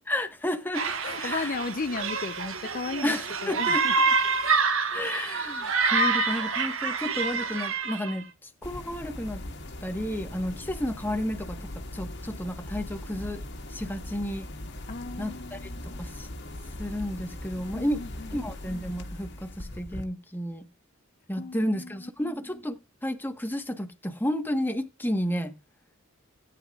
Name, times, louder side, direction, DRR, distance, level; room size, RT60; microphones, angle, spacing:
voice 1, 0.1-1.6 3.0-4.0 4.9-9.4 9.8-13.4 13.7-14.5 15.2-16.3 16.8-18.0 18.3-20.7 21.3-25.5, left 1 dB, 10° left, 1.4 m, -32 dB
sound 1, 0.7-8.2, right 4 dB, 70° right, 1.5 m, -27 dB
voice 2, 1.0-3.1 3.4-3.9 14.9-16.0 17.7-18.4 21.4-22.0, left 3 dB, 40° left, 0.6 m, -35 dB
sound 2, 8.6-20.0, left 1 dB, 55° left, 1.9 m, -40 dB
18.0 x 9.7 x 2.4 m
head